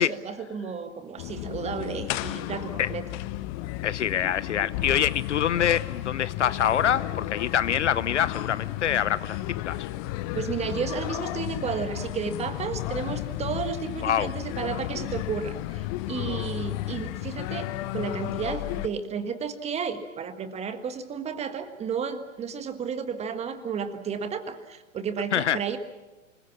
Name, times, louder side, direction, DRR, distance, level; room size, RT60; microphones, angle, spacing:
voice 1, 0.0-3.0 10.3-17.7 17.9-25.8, right 6 dB, 15° right, 10 dB, 1.6 m, -32 dB
sound 1, 1.2-18.9, left 16 dB, 30° left, 0.8 m, -33 dB
voice 2, 3.8-9.9 14.0-14.3 25.3-25.6, left 9 dB, 60° left, 18 dB, 0.8 m, -25 dB
26.5 x 21.5 x 7.3 m, 1.1 s
figure-of-eight pair, 110°, 39 cm